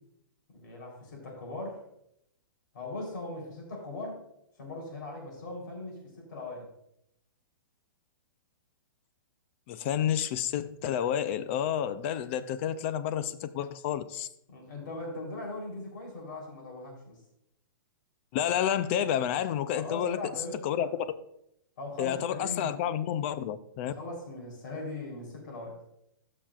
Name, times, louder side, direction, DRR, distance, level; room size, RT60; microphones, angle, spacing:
voice 1, 0.5-1.8 2.7-4.2 4.6-6.7 14.5-17.2 19.8-20.9 21.8-23.2 23.8-25.8, left 2 dB, 65° left, 0 dB, 3.6 m, -40 dB
voice 2, 9.7-14.3 18.3-20.2 20.6-20.9 22.0-23.9, left 10 dB, 35° left, 13 dB, 0.4 m, -30 dB
15.0 x 5.9 x 2.4 m, 0.77 s
hypercardioid pair, 155°, 12 cm